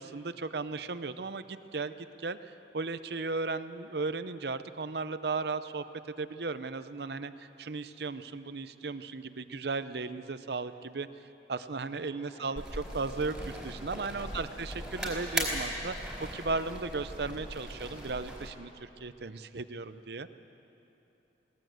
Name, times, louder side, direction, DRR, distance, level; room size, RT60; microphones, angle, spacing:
voice 1, 0.0-5.8 6.2-11.1 11.5-13.3 13.6-15.9 16.3-20.3, right 3 dB, 60° right, 12 dB, 0.7 m, -36 dB
voice 2, 12.2-13.4 14.0-15.1, equal, 35° left, -5 dB, 6.9 m, -55 dB
sound 1, 12.6-18.5, equal, ahead, 3.9 m, -38 dB
21.5 x 18.0 x 7.8 m, 3.0 s
head